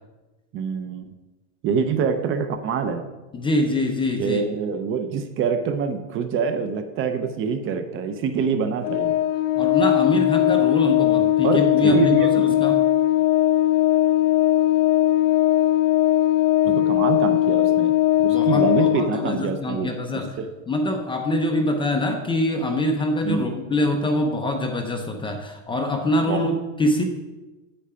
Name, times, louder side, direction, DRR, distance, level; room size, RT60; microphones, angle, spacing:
voice 1, 0.5-1.0 1.6-3.0 4.2-9.1 11.4-12.6 16.6-17.9 18.2-19.9 20.4-20.5 23.2-23.5 26.3-26.5, right 5 dB, 30° right, 8 dB, 0.6 m, -25 dB
voice 2, 3.3-4.4 9.6-12.8 18.2-20.3 20.7-27.0, left 1 dB, 10° left, 3 dB, 0.6 m, -24 dB
Organ, 8.8-19.5, left 13 dB, 60° left, 0.6 m, -19 dB
8.6 x 8.6 x 5.6 m, 1.1 s
supercardioid pair, 155°, 44 cm